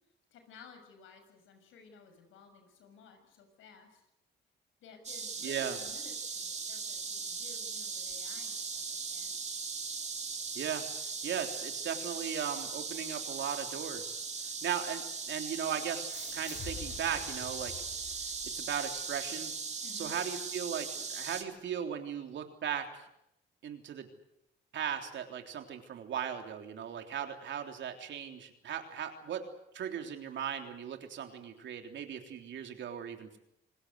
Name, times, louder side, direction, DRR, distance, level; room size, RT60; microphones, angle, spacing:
voice 1, 0.3-4.1 4.8-9.3 19.8-20.2, left 5 dB, 85° left, 6 dB, 6.6 m, -56 dB
sound 1, 5.0-21.4, right 5 dB, 35° right, 2.8 m, -39 dB
voice 2, 5.4-5.8 10.6-10.9 11.2-14.2 14.6-17.9 18.5-19.5 19.9-22.9 23.6-24.1 24.7-29.5 29.7-33.4, right 8 dB, 65° right, 5 dB, 3.6 m, -37 dB
sound 2, 16.1-19.1, left 6 dB, 65° left, 4.0 m, -48 dB
27.0 x 19.5 x 8.0 m, 0.81 s
cardioid pair, 90°, 20 cm